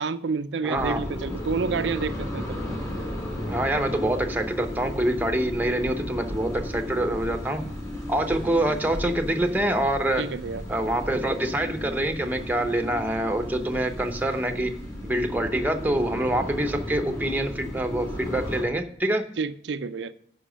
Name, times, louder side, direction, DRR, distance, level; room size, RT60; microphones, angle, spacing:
voice 1, 0.0-2.6 10.2-10.6 19.4-20.1, right 4 dB, 80° right, 0.5 m, -29 dB
voice 2, 0.6-1.0 3.5-7.6 8.1-10.2 10.7-14.7 15.0-19.2, right 1 dB, 10° right, 0.8 m, -26 dB
sound 1, 0.7-18.6, left 1 dB, 15° left, 3.7 m, -34 dB
10.0 x 5.9 x 6.2 m
head